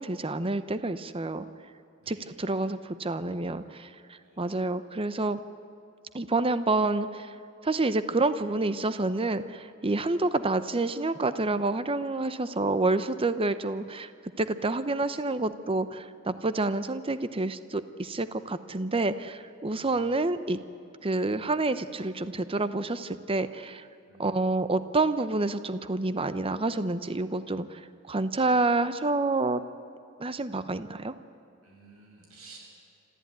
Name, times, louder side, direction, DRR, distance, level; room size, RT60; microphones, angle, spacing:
voice 1, 0.0-1.5 2.1-3.9 4.4-5.4 6.1-7.3 7.6-14.1 14.4-20.6 21.0-23.9 24.2-27.8 28.1-29.6 30.2-31.1, right 2 dB, 25° right, 12 dB, 0.7 m, -28 dB
voice 2, 2.0-2.8 4.2-4.5 19.8-20.2 24.1-24.5 31.6-32.6, right 3 dB, 80° right, -1 dB, 7.2 m, -54 dB
27.0 x 14.0 x 9.5 m, 2.6 s
head